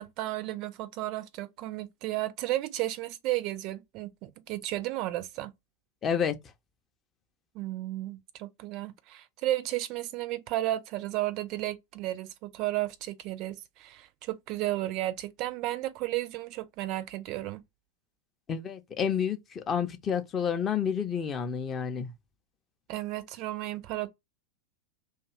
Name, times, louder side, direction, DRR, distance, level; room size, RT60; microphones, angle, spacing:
voice 1, 0.0-5.5 7.5-17.6 22.9-24.1, right 16 dB, 40° right, 0.4 m, -33 dB
voice 2, 6.0-6.4 18.5-22.1, left 7 dB, 25° left, 0.5 m, -29 dB
2.5 x 2.3 x 2.9 m
figure-of-eight pair, 90°, 0 cm